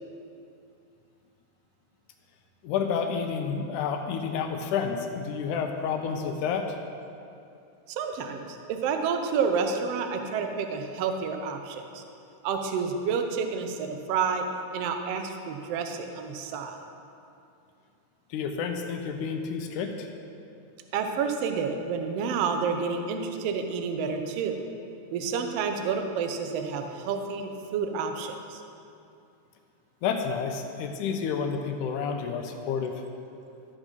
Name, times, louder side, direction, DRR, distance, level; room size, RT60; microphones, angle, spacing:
voice 1, 2.6-6.7 18.3-20.1 30.0-32.9, left 6 dB, 75° left, 5 dB, 2.1 m, -30 dB
voice 2, 7.9-12.0 12.4-14.5 14.7-16.8 20.9-24.6 25.1-28.6, right 5 dB, 75° right, 6 dB, 1.4 m, -29 dB
13.5 x 7.2 x 5.3 m, 2.6 s
omnidirectional pair, 3.7 m